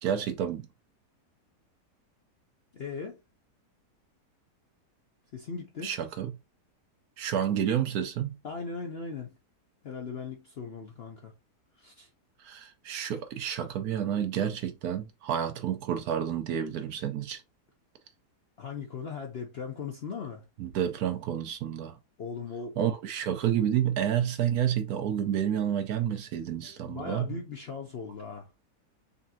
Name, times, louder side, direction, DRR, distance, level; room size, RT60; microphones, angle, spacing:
voice 1, 0.0-0.7 5.8-6.3 7.2-8.4 12.4-17.4 20.6-21.9 22.8-27.3, right 9 dB, 70° right, 1.1 m, -29 dB
voice 2, 2.7-3.2 5.3-5.9 8.4-9.4 9.8-11.3 11.8-12.1 18.6-20.4 22.2-22.8 26.6-28.5, left 5 dB, 60° left, 0.6 m, -38 dB
4.1 x 3.5 x 2.7 m
omnidirectional pair, 1.8 m